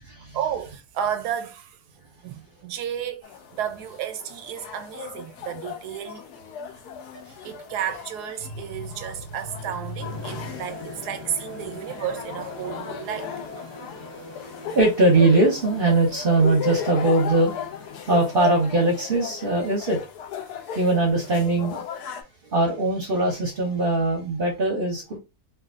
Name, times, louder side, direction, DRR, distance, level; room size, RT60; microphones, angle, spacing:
voice 1, 0.3-1.8 2.2-6.2 7.3-13.7, right 9 dB, 85° right, 1.2 m, -32 dB
sound 1, 3.2-22.2, left 7 dB, 90° left, 1.2 m, -36 dB
sound 2, 10.0-18.7, left 3 dB, 60° left, 1.5 m, -41 dB
voice 2, 14.7-17.6 18.1-20.0 20.7-21.8 22.5-25.2, right 2 dB, 50° right, 0.7 m, -21 dB
3.3 x 2.5 x 2.5 m
omnidirectional pair, 1.6 m